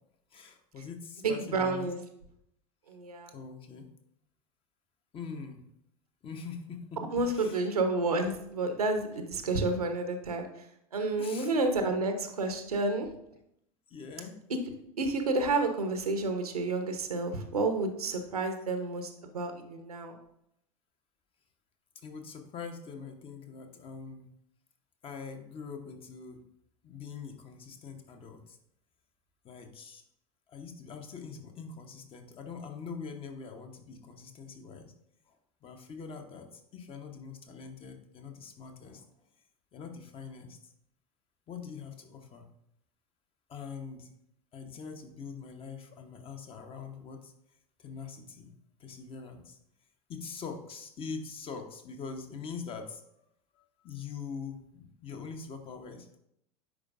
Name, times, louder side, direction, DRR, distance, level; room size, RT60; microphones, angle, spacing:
voice 1, 0.3-1.9 3.3-3.8 5.1-5.6 6.2-7.1 7.3-7.6 11.2-11.6 13.9-14.4 22.0-24.3 25.0-26.4 26.8-28.6 29.4-30.0 30.5-34.9 35.3-35.4 35.6-39.1 39.7-40.7 41.5-42.5 43.5-44.1 44.5-47.3 47.8-48.5 48.8-49.6 50.1-53.0 53.5-56.2, left 5 dB, 30° left, 5 dB, 1.0 m, -43 dB
voice 2, 1.2-2.0 2.9-3.3 7.1-10.7 10.9-13.1 14.5-14.6 15.0-20.2, right 3 dB, 75° right, 6 dB, 0.9 m, -30 dB
9.8 x 4.6 x 2.5 m, 0.75 s
figure-of-eight pair, 85°, 19 cm